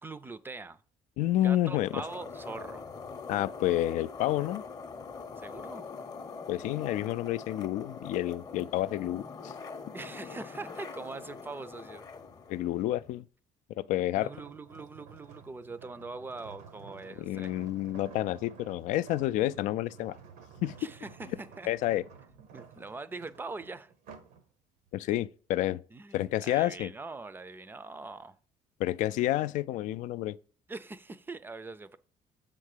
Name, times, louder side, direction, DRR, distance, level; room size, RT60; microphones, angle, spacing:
voice 1, 0.0-0.8 1.4-2.8 5.4-5.9 9.9-12.1 14.1-17.5 20.8-21.7 22.5-23.9 25.9-28.4 30.7-32.0, right 3 dB, 15° right, 0.4 m, -42 dB
voice 2, 1.2-2.0 3.3-4.6 6.5-9.5 12.5-13.3 13.8-14.3 17.2-20.2 20.6-20.7 21.7-22.0 24.9-25.8 26.1-26.9 28.8-30.4, left 14 dB, 75° left, 0.4 m, -29 dB
sound 1, 1.6-13.2, left 5 dB, 30° left, 0.7 m, -44 dB
sound 2, 14.2-24.4 24.9-25.1, right 6 dB, 90° right, 1.2 m, -52 dB
7.3 x 3.8 x 6.5 m
cardioid pair, 130°, 13 cm